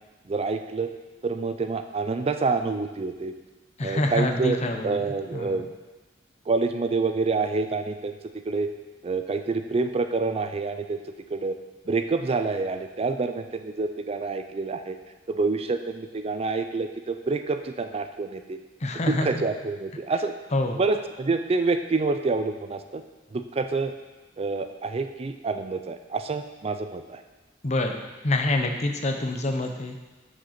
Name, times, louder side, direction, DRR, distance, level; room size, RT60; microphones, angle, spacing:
voice 1, 0.3-0.9 1.2-3.3 3.8-4.6 4.8-5.7 6.5-8.1 8.4-8.7 9.0-11.0 11.3-11.6 11.9-15.0 15.3-18.6 19.0-20.3 20.7-23.0 23.3-23.9 24.4-27.2, right 3 dB, 30° right, 8 dB, 0.4 m, -27 dB
voice 2, 3.8-5.0 5.3-5.6 18.8-19.4 20.5-20.8 27.6-30.0, left 2 dB, 40° left, 4 dB, 0.9 m, -26 dB
7.5 x 6.5 x 5.9 m, 1.2 s
head